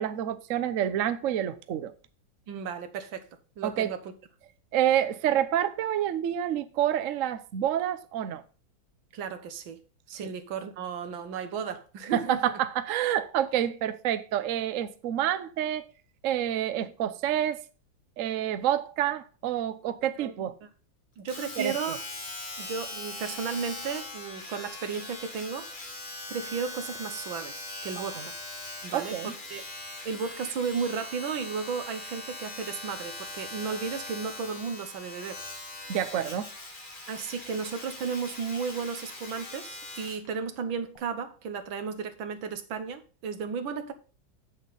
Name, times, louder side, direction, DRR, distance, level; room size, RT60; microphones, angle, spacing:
voice 1, 0.0-1.9 3.6-3.9 4.7-8.4 12.3-15.9 16.2-17.6 18.2-20.5 21.6-21.7 28.0-28.3 28.9-29.3 35.9-36.5, right 11 dB, 60° right, 0.8 m, -28 dB
voice 2, 2.5-3.2 3.6-4.0 9.1-9.8 10.1-12.5 20.2-20.5 21.2-22.0 22.6-25.7 26.3-28.4 28.8-29.7 30.0-35.4 37.1-43.9, right 6 dB, 80° right, 1.8 m, -34 dB
Domestic sounds home sounds, 21.3-40.3 41.0-41.1, left 2 dB, 25° left, 1.7 m, -41 dB
8.0 x 7.1 x 4.1 m
omnidirectional pair, 2.1 m